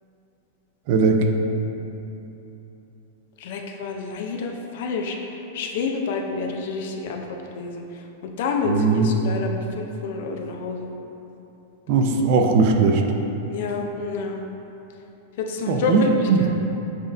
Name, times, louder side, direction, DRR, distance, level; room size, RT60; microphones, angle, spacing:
voice 1, 0.9-1.3 8.6-9.1 11.9-13.0 15.7-16.5, right 4 dB, 50° right, 4 dB, 0.4 m, -19 dB
voice 2, 3.4-10.9 13.5-14.4 15.4-16.5, left 4 dB, 60° left, 3 dB, 0.4 m, -28 dB
7.1 x 2.4 x 2.5 m, 3.0 s
supercardioid pair, 160°, 0 cm